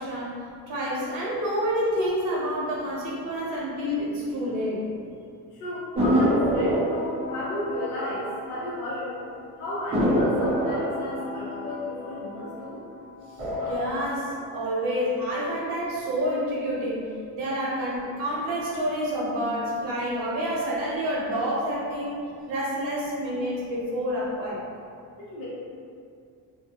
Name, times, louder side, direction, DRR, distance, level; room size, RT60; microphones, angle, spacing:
voice 1, 0.0-4.8 13.6-17.1 17.3-22.2 22.5-24.6, equal, 70° right, -5 dB, 0.8 m, -28 dB
voice 2, 5.6-9.1 9.6-12.8 25.3-25.5, left 1 dB, 65° left, -9 dB, 0.9 m, -33 dB
sound 1, 6.0-9.0 9.3-9.4 9.9-12.9 13.3-13.9, equal, 15° right, 0.6 m, -26 dB
2.4 x 2.2 x 2.7 m, 2.4 s
cardioid pair, 165°, 34 cm